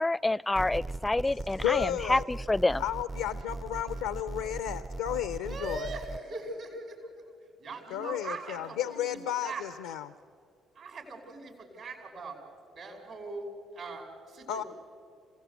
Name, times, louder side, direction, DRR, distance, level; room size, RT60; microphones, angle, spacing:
voice 1, 0.0-2.8, left 2 dB, 15° left, 23 dB, 0.5 m, -27 dB
sound 1, 0.6-6.2, right 2 dB, 30° right, 0.6 m, -39 dB
voice 2, 1.5-2.2 2.8-5.9 7.9-10.1 14.5-14.6, left 11 dB, 85° left, 14 dB, 0.5 m, -33 dB
voice 3, 5.4-9.6 10.7-12.4 12.7-14.7, right 3 dB, 65° right, 1 dB, 5.4 m, -41 dB
27.0 x 16.5 x 8.2 m, 2.4 s
hypercardioid pair, 50°, 0 cm